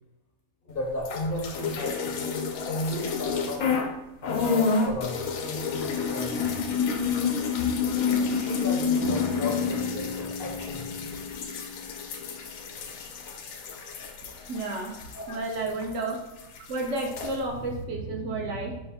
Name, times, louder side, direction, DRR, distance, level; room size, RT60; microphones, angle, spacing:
voice 1, 0.7-3.7 4.2-6.6 8.0-11.1 15.1-15.4, left 1 dB, 55° left, -1 dB, 0.7 m, -34 dB
sound 1, 1.0-3.9 4.2-16.1 16.4-17.3, left 5 dB, 90° left, 1.1 m, -29 dB
Bass guitar, 9.0-13.0, left 3 dB, 20° right, 0.4 m, -37 dB
voice 2, 14.5-15.0 15.3-16.2 16.7-18.8, right 2 dB, 65° right, 1 dB, 1.0 m, -31 dB
5.6 x 2.5 x 3.5 m, 0.92 s
omnidirectional pair, 1.4 m